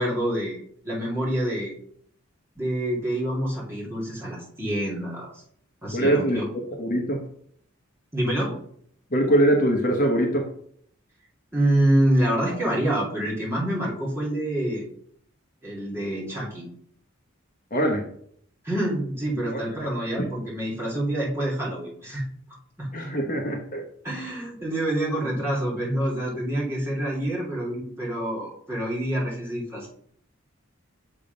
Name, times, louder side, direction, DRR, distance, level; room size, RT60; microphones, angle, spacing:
voice 1, 0.0-1.7 2.6-5.4 5.8-6.5 8.1-8.5 11.5-14.9 15.6-16.7 18.6-22.2 22.8-22.9 24.0-29.9, right 1 dB, 10° right, -5 dB, 2.2 m, -26 dB
voice 2, 5.9-6.4 6.8-7.2 9.1-10.4 17.7-18.0 19.5-19.6 22.9-23.8, right 1 dB, 40° left, 1 dB, 1.0 m, -22 dB
6.9 x 3.6 x 5.2 m, 0.65 s
head